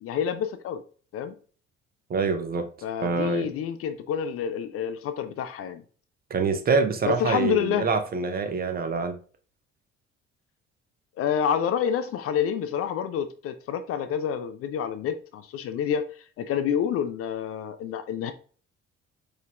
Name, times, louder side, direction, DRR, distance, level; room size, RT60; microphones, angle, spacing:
voice 1, 0.0-0.8 1.1-1.3 2.8-5.8 7.0-7.9 11.2-16.1 16.4-18.3, left 8 dB, 40° left, 0.4 m, -28 dB
voice 2, 2.1-2.7 3.0-3.5 6.3-9.2, right 4 dB, 25° right, 0.5 m, -25 dB
4.5 x 3.2 x 2.3 m
figure-of-eight pair, 45°, 37 cm